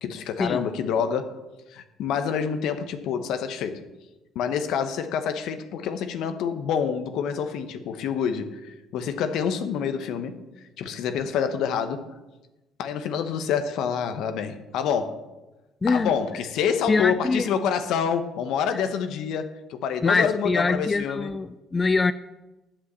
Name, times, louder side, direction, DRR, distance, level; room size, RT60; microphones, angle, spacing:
voice 1, 0.0-1.4 1.7-3.9 4.3-10.5 10.8-12.1 12.8-15.2 15.9-21.3, left 7 dB, 75° left, 1.0 m, -27 dB
voice 2, 15.8-16.1 16.9-17.5 20.0-22.1, left 4 dB, 25° left, 0.4 m, -23 dB
8.8 x 7.5 x 6.9 m
supercardioid pair, 80°, 0 cm